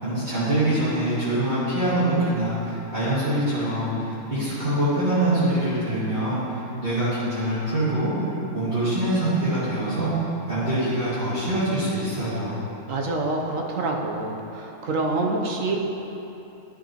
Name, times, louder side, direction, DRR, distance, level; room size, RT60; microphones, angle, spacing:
voice 1, 0.0-12.6, right 1 dB, 40° right, -15 dB, 2.3 m, -24 dB
voice 2, 12.9-15.8, right 2 dB, 65° right, 0 dB, 1.1 m, -26 dB
12.0 x 6.4 x 2.9 m, 3.0 s
omnidirectional pair, 1.5 m